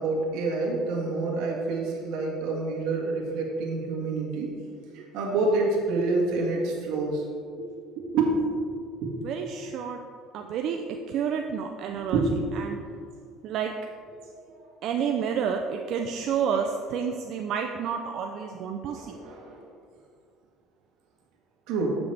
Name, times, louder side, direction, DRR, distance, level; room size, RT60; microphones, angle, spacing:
voice 1, 0.0-4.5 5.1-7.2 8.0-8.3 9.0-9.1 12.1-12.3 14.3-14.4 18.9-19.6 21.7-22.0, right 3 dB, 75° right, -1 dB, 1.6 m, -27 dB
voice 2, 9.2-10.0 10.3-12.2 12.5-12.8 13.4-13.7 14.8-19.2, right 7 dB, 60° right, 4 dB, 0.4 m, -30 dB
8.4 x 6.0 x 3.3 m, 2.2 s
cardioid pair, 115°, 0 cm